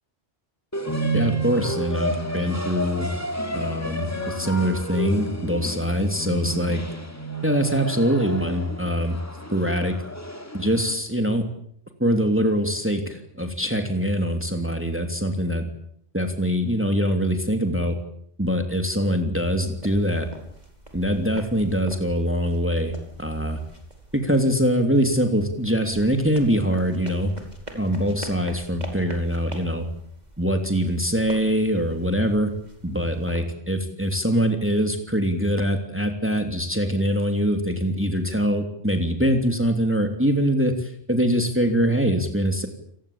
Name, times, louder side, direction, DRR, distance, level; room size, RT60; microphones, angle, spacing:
sound 1, 0.7-10.9, right 2 dB, 15° left, 2.8 m, -31 dB
voice 1, 1.1-3.1 3.5-6.8 7.4-9.2 9.5-10.0 10.5-11.4 12.0-15.7 16.1-18.0 18.4-20.3 20.9-23.6 24.1-27.3 27.7-29.9 30.4-32.5 32.8-42.7, equal, 10° right, 5 dB, 3.1 m, -23 dB
sound 2, 19.6-33.4, right 1 dB, 35° right, 5.0 m, -44 dB
29.5 x 20.0 x 8.7 m, 0.67 s
omnidirectional pair, 1.2 m